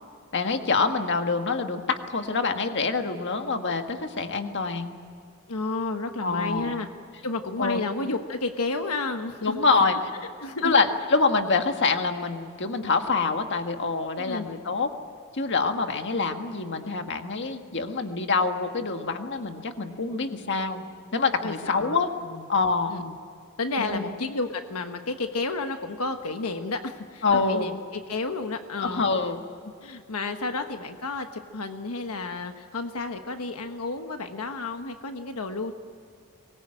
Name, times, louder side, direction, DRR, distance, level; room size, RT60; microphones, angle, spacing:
voice 1, 0.3-5.0 6.2-6.8 7.6-7.8 9.4-10.1 10.6-14.9 15.3-20.8 21.1-22.1 22.5-22.9 23.8-24.1 27.2-27.7 28.8-29.4 30.5-30.6, left 4 dB, 55° left, 6 dB, 1.6 m, -26 dB
voice 2, 5.5-6.9 7.2-10.0 10.4-10.7 14.3-14.4 21.4-22.0 22.2-22.4 22.9-23.1 23.6-29.0 29.8-35.7, left 3 dB, 85° left, 6 dB, 1.3 m, -31 dB
24.0 x 20.5 x 8.9 m, 2.3 s
head